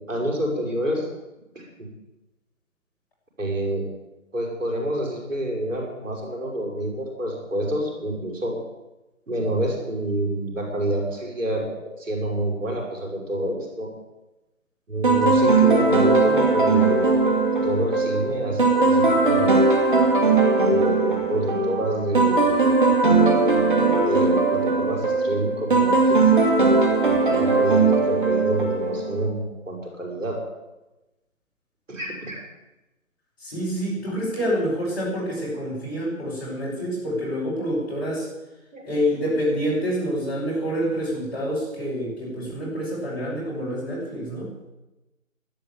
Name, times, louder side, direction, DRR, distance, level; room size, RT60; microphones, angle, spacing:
voice 1, 0.1-1.1 1.6-1.9 3.4-3.9 4.3-8.6 9.3-11.7 12.0-13.9 14.9-17.2 17.6-19.5 20.7-22.8 24.1-26.3 27.3-30.4 31.9-32.4 38.7-38.9, right 1 dB, 65° right, 0 dB, 5.7 m, -28 dB
sound 1, 15.0-29.3, right 3 dB, 40° right, 2.1 m, -19 dB
voice 2, 33.4-38.3 38.8-44.5, equal, 15° left, -8 dB, 5.4 m, -27 dB
12.5 x 10.5 x 9.0 m, 1.0 s
figure-of-eight pair, 170°, 41 cm